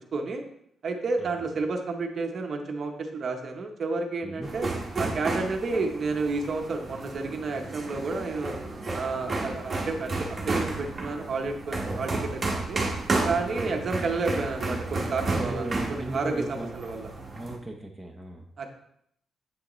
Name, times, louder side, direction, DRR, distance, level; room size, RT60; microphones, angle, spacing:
voice 1, 0.1-0.4 0.8-4.7 5.0-8.6 8.9-12.8 13.3-17.1 18.6-18.7, right 3 dB, 40° right, 4 dB, 0.7 m, -31 dB
sound 1, 4.4-17.6, right 2 dB, 20° right, 1.1 m, -32 dB
voice 2, 12.0-12.3 13.4-13.7 15.4-16.7 17.3-18.5, right 1 dB, 5° right, 0 dB, 0.6 m, -37 dB
7.7 x 6.2 x 3.0 m, 0.71 s
wide cardioid pair, 180°, 0 cm